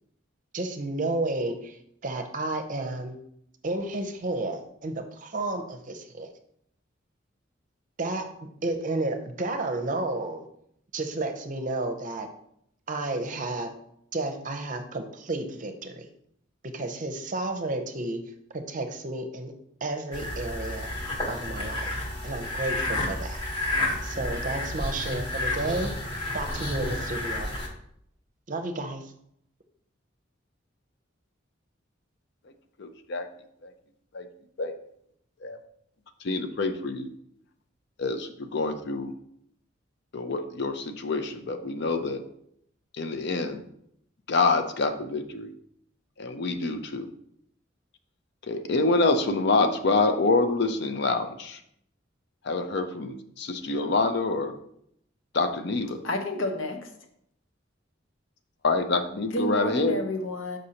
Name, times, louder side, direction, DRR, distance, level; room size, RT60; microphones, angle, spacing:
voice 1, 0.5-3.2 3.6-6.3 8.0-8.4 8.6-10.4 10.9-12.3 12.9-13.7 14.1-16.1 16.6-18.2 18.5-19.5 19.8-20.9 21.3-21.9 22.2-23.4 24.0-25.9 26.3-27.5 28.5-29.1, right 2 dB, 45° right, 7 dB, 0.6 m, -31 dB
sound 1, 20.1-27.7, left 1 dB, 25° left, 1.2 m, -31 dB
voice 2, 32.8-33.3 33.6-33.7 34.1-34.3 34.6-34.7 35.4-35.6 36.2-37.1 38.0-39.1 40.1-42.2 43.0-43.6 44.3-45.5 46.2-47.1 48.5-51.6 52.4-54.6 55.3-56.0 58.6-60.0, left 3 dB, 60° left, 8 dB, 0.5 m, -26 dB
voice 3, 56.0-56.9 59.3-60.6, left 1 dB, 90° left, 4 dB, 0.8 m, -30 dB
6.4 x 5.2 x 2.8 m, 0.71 s
head